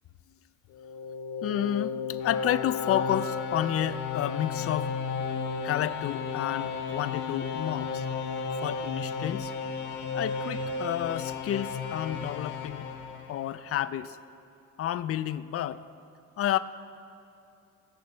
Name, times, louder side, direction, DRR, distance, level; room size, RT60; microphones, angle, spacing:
sound 1, 0.7-13.8, left 5 dB, 85° left, 0.9 m, -33 dB
voice 1, 1.4-5.0 5.6-8.1 8.6-9.5 10.1-12.9 13.3-14.2 14.8-15.8 16.4-16.6, left 11 dB, 50° left, 14 dB, 0.4 m, -30 dB
16.5 x 6.6 x 3.3 m, 2.7 s
cardioid pair, 90°, 30 cm